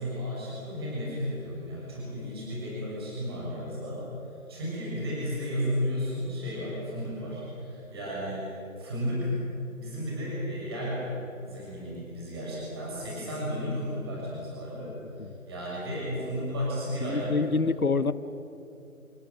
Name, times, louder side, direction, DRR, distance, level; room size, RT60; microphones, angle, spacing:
voice 1, 0.0-4.0 4.5-8.4 8.7-9.3 9.8-14.9 15.5-17.6, equal, 20° right, -6 dB, 6.7 m, -33 dB
voice 2, 17.0-18.1, left 4 dB, 85° left, 13 dB, 1.4 m, -27 dB
28.0 x 21.5 x 7.8 m, 2.7 s
figure-of-eight pair, 175°, 42 cm